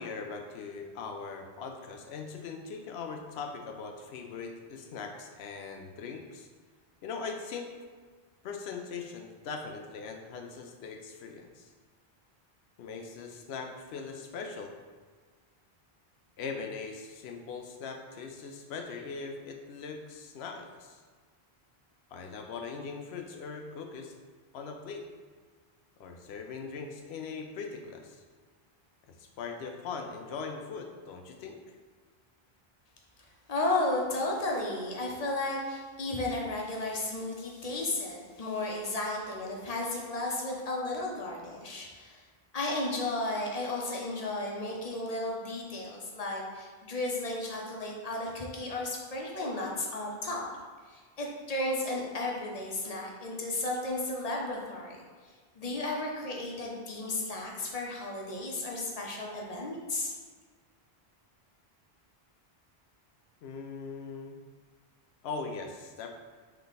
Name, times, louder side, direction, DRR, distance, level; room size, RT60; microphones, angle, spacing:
voice 1, 0.0-6.5 7.0-7.7 8.4-11.7 12.8-14.7 16.4-21.0 22.1-24.2 24.5-25.0 26.0-28.2 29.2-31.6 63.4-64.4 65.2-66.1, left 5 dB, 90° left, 3 dB, 0.8 m, -40 dB
voice 2, 33.5-42.2 42.5-50.4 50.9-60.1, left 2 dB, 45° left, -2 dB, 0.7 m, -34 dB
3.4 x 3.2 x 4.0 m, 1.5 s
omnidirectional pair, 1.0 m